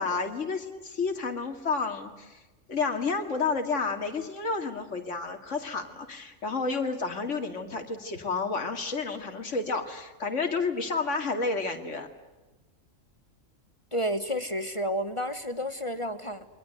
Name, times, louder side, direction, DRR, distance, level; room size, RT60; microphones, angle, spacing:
voice 1, 0.0-2.4 2.7-12.1, left 4 dB, 65° left, 4 dB, 2.7 m, -30 dB
voice 2, 13.9-16.5, equal, 25° left, 10 dB, 1.3 m, -31 dB
28.5 x 22.5 x 7.9 m, 1.1 s
omnidirectional pair, 1.4 m